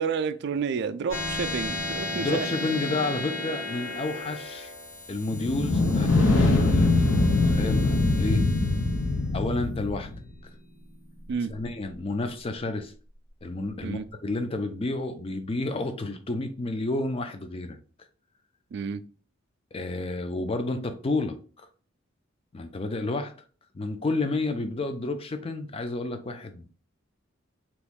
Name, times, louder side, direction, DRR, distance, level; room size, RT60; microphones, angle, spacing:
voice 1, 0.0-2.5 11.3-11.5 13.8-14.1 18.7-19.0, right 6 dB, 55° right, 0.3 m, -30 dB
sound 1, 1.1-12.0, left 2 dB, 65° left, 1.7 m, -36 dB
voice 2, 2.2-4.7 5.1-8.5 9.3-10.1 11.5-12.9 13.4-17.8 19.7-21.7 22.5-23.3 23.7-26.7, left 2 dB, 30° left, 0.4 m, -30 dB
sound 2, 5.3-10.2, left 2 dB, 85° left, 0.6 m, -23 dB
3.0 x 2.6 x 3.5 m
head